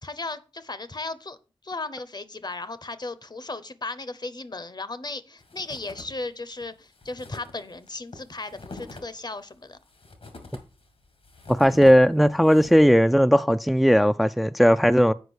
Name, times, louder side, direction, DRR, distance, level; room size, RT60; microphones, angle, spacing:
voice 1, 0.0-1.4 1.6-9.8, left 3 dB, 45° left, 0.8 m, -36 dB
sound 1, 5.4-6.3 6.6-6.7 6.9-13.0, left 3 dB, 80° left, 1.8 m, -44 dB
voice 2, 11.5-15.1, equal, ahead, 0.3 m, -17 dB
8.1 x 4.9 x 6.3 m
cardioid pair, 45°, 10 cm